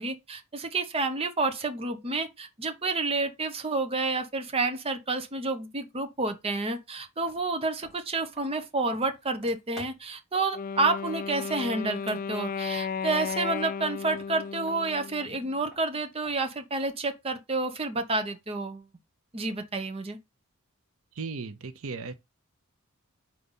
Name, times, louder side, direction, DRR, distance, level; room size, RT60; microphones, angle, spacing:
voice 1, 0.0-18.9 19.3-20.2, right 3 dB, 25° right, 0.8 m, -29 dB
sound 1, 6.7-6.8 7.2-10.3 11.8-13.8 14.1-17.2, left 1 dB, ahead, 2.8 m, -53 dB
Wind instrument woodwind instrument, 10.5-15.6, left 6 dB, 40° left, 0.4 m, -34 dB
voice 2, 21.2-22.1, right 4 dB, 70° right, 0.7 m, -36 dB
4.6 x 4.0 x 5.4 m
head